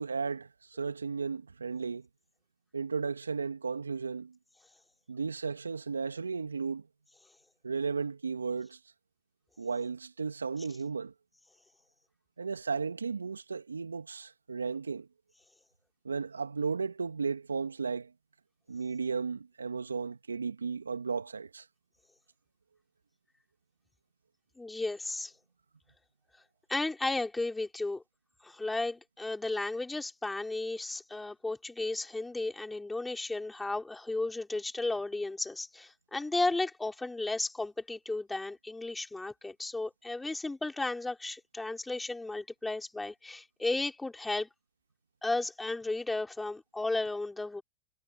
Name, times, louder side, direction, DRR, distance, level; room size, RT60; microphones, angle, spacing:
voice 1, 0.0-2.1 2.7-4.4 5.1-6.9 7.6-8.8 9.6-11.1 12.4-15.1 16.0-18.1 18.7-21.6, right 5 dB, 90° right, 2.8 m, -34 dB
voice 2, 24.6-25.3 26.7-28.0 28.4-44.5 45.2-47.6, left 2 dB, 10° left, 5.0 m, -34 dB
hypercardioid pair, 90°, 0 cm